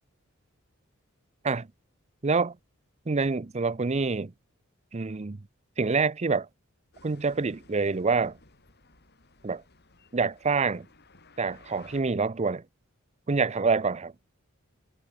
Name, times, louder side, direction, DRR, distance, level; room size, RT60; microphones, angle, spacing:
voice 1, 2.2-2.6 3.1-4.3 4.9-5.4 5.8-6.5 7.0-8.4 9.4-9.6 10.1-10.9 11.4-12.6 13.3-14.1, right 4 dB, 30° right, 0.6 m, -26 dB
sound 1, 6.9-12.0, left 3 dB, 55° left, 6.5 m, -57 dB
head